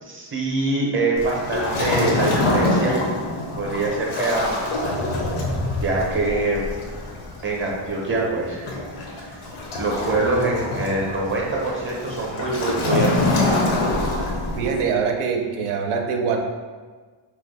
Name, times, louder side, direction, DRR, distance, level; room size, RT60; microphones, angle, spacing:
voice 1, 0.0-3.0 3.5-5.0 5.8-6.7 7.4-8.7 9.8-13.3, right 2 dB, 25° right, -3 dB, 0.6 m, -24 dB
Waves surf, 1.2-14.8, left 2 dB, 80° left, 0.7 m, -25 dB
voice 2, 14.6-16.4, right 5 dB, 80° right, 3 dB, 0.5 m, -23 dB
2.8 x 2.0 x 3.9 m, 1.5 s
wide cardioid pair, 145°, 49 cm